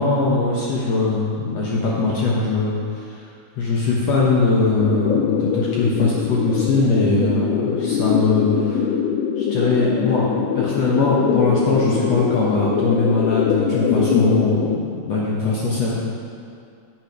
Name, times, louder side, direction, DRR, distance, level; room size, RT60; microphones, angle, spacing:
voice 1, 0.0-3.2 3.6-8.9 9.4-10.3 10.5-15.9, left 3 dB, 70° left, -5 dB, 1.6 m, -21 dB
sound 1, 4.8-14.8, left 7 dB, 85° left, 1.8 m, -22 dB
9.0 x 8.7 x 5.1 m, 2.4 s
omnidirectional pair, 4.4 m